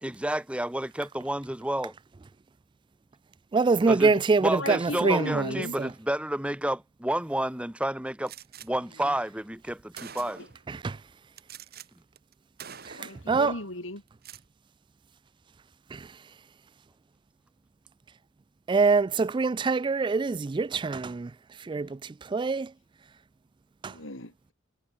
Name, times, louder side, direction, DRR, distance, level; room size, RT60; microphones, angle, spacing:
voice 1, 0.0-1.9 3.9-4.1 4.4-8.3 8.6-10.4, right 1 dB, 5° right, 1.1 m, -30 dB
voice 2, 3.5-5.9 10.7-11.0 12.9-13.0 13.3-13.6 15.9-16.1 18.7-21.3 21.6-22.7 23.8-23.9, right 4 dB, 25° right, 0.3 m, -25 dB
voice 3, 4.6-5.8 9.0-9.1 13.0-14.0 21.7-21.9 23.9-24.5, left 2 dB, 85° left, 5.0 m, -36 dB
Gunshot gunfire, 8.3-8.7 9.5-9.6 9.9-10.6 11.4-11.9 12.2-12.3 12.6-13.3 14.1-14.5, right 7 dB, 55° right, 3.8 m, -45 dB
head